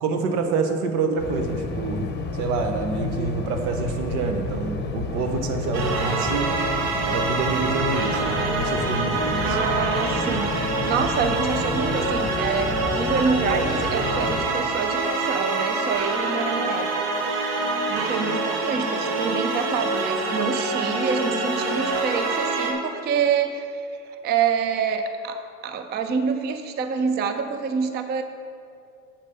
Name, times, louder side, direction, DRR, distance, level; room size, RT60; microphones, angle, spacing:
voice 1, 0.0-2.1 2.3-6.5 7.0-9.6, right 4 dB, 70° right, 5 dB, 1.1 m, -27 dB
sound 1, 1.2-14.5, left 4 dB, 25° left, 0.9 m, -31 dB
sound 2, 5.7-22.7, right 3 dB, 55° right, 1.3 m, -26 dB
voice 2, 9.4-16.9 17.9-23.9 24.2-28.2, right 6 dB, 25° right, 8 dB, 0.4 m, -26 dB
7.3 x 5.3 x 5.3 m, 2.5 s
hypercardioid pair, 85°, 46 cm